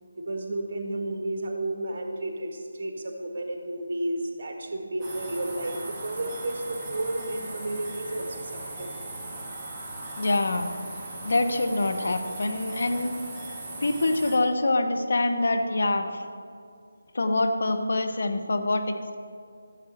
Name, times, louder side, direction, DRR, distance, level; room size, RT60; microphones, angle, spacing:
voice 1, 0.2-8.9, right 1 dB, 45° right, 3 dB, 1.5 m, -32 dB
sound 1, 5.0-14.4, right 2 dB, 20° right, 1.4 m, -38 dB
voice 2, 10.2-10.7 11.2-13.2 13.8-16.2 17.1-19.1, left 2 dB, 60° left, 7 dB, 0.8 m, -25 dB
12.5 x 7.7 x 4.2 m, 2.3 s
figure-of-eight pair, 160°, 0 cm